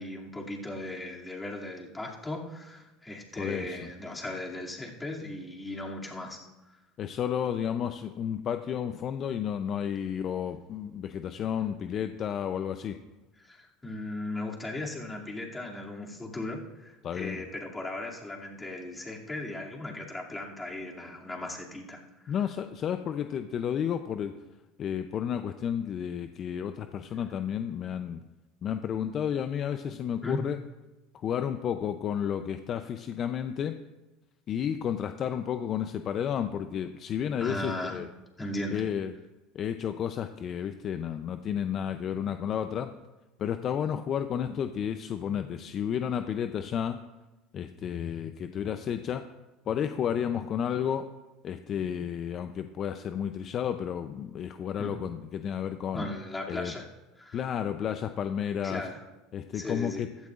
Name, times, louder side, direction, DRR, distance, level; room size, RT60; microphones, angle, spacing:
voice 1, 0.0-6.4 6.7-6.8 13.4-22.4 30.2-30.4 37.4-38.0 38.4-38.8 54.8-54.9 55.9-56.8 57.2-57.4 58.6-59.0 59.5-60.0, left 2 dB, 15° left, -2 dB, 2.6 m, -37 dB
voice 2, 3.3-3.8 7.0-13.0 17.0-17.4 22.3-24.3 24.8-28.2 28.6-30.6 31.2-33.8 34.5-38.1 38.7-39.1 39.5-42.9 43.4-47.0 47.5-49.2 49.7-51.1 51.4-56.1 56.5-56.7 57.3-58.8 59.3-60.1, left 8 dB, 45° left, 9 dB, 0.6 m, -32 dB
15.5 x 12.5 x 2.5 m, 1.1 s
supercardioid pair, 105°, 0 cm